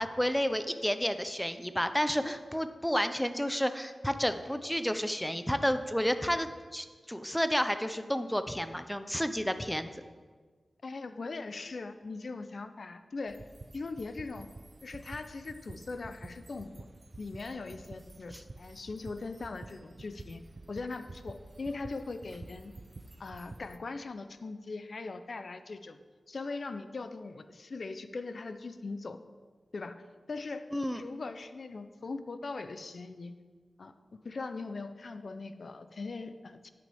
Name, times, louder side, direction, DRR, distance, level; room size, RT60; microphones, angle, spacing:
voice 1, 0.0-9.9 18.3-18.4 30.7-31.0, equal, 5° left, 10 dB, 0.6 m, -31 dB
voice 2, 10.8-13.4 13.7-14.5 14.8-16.9 17.2-20.4 20.7-22.7 23.2-26.0 26.3-29.2 29.7-30.7 30.9-33.4 33.8-33.9 34.2-36.7, left 3 dB, 65° left, 10 dB, 0.5 m, -40 dB
sound 1, 13.3-23.8, right 2 dB, 45° right, 0.5 m, -49 dB
10.5 x 7.8 x 3.5 m, 1.5 s
wide cardioid pair, 65°, 0 cm